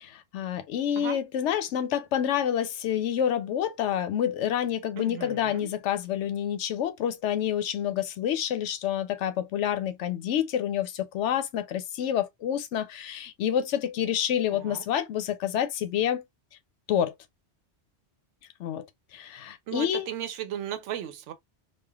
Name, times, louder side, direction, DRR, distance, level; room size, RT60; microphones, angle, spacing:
voice 1, 0.0-16.2 16.9-17.1 18.6-18.8 19.1-20.1, left 10 dB, 80° left, 0.9 m, -28 dB
voice 2, 5.0-5.7 14.5-14.8 19.7-21.3, right 10 dB, 85° right, 0.9 m, -36 dB
3.2 x 2.3 x 2.2 m
omnidirectional pair, 1.2 m